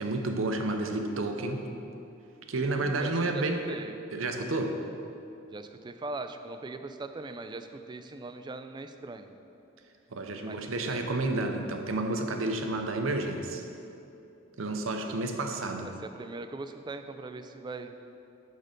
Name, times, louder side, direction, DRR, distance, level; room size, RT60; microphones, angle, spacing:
voice 1, 0.0-1.7 2.5-3.6 4.1-4.8 10.1-13.6 14.6-15.9, right 2 dB, 75° right, 5 dB, 0.7 m, -30 dB
voice 2, 2.6-4.0 5.5-9.3 10.4-10.6 10.9-11.1 12.4-12.6 14.7-15.2 15.8-17.9, right 3 dB, 20° right, 8 dB, 0.3 m, -41 dB
6.5 x 6.3 x 5.1 m, 2.8 s
head